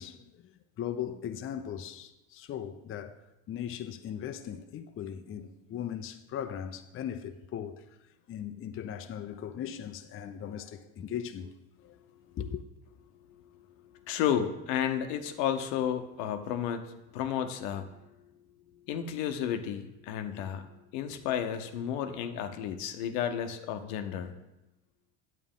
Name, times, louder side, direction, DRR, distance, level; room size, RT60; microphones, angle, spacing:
voice 1, 0.0-3.2 3.5-7.8 8.3-11.5 11.8-12.0 12.3-12.6, left 9 dB, 30° left, 0.5 m, -38 dB
voice 2, 14.1-17.8 18.9-20.7 20.9-24.3, left 9 dB, 75° left, 0.9 m, -32 dB
9.0 x 8.3 x 3.7 m
supercardioid pair, 95°, 42 cm